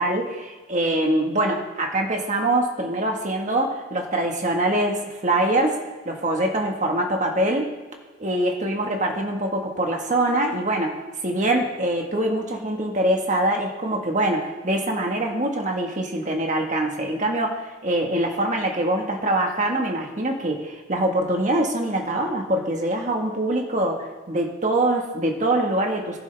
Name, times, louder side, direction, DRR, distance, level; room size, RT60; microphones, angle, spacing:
voice 1, 0.0-5.8 6.0-7.7 8.2-11.0 11.2-26.2, right 1 dB, 35° right, 2 dB, 1.5 m, -24 dB
19.0 x 11.0 x 3.5 m, 1.2 s
head